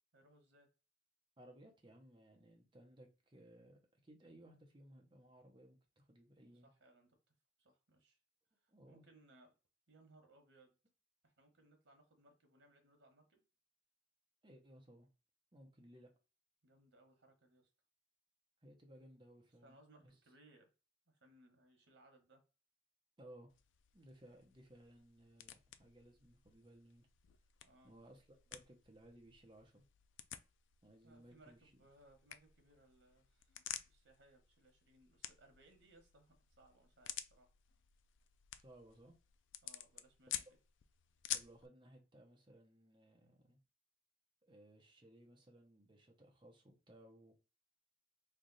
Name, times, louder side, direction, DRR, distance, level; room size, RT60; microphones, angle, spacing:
voice 1, 0.1-0.7 6.6-7.2 7.6-8.2 8.6-9.5 9.9-10.7 11.2-13.4 16.6-17.7 19.6-20.7 21.1-22.4 27.6-28.0 31.0-37.5 39.6-40.6, right 2 dB, 80° right, 1.3 m, -67 dB
voice 2, 1.4-6.7 8.7-9.0 14.4-15.1 15.5-16.1 18.6-20.1 23.2-23.5 23.9-27.1 27.8-29.9 30.8-31.7 38.6-39.1 41.3-43.6 44.4-47.3, right 1 dB, 25° right, 0.8 m, -61 dB
sound 1, 23.5-41.7, left 11 dB, 85° left, 0.4 m, -51 dB
3.3 x 2.4 x 4.0 m
head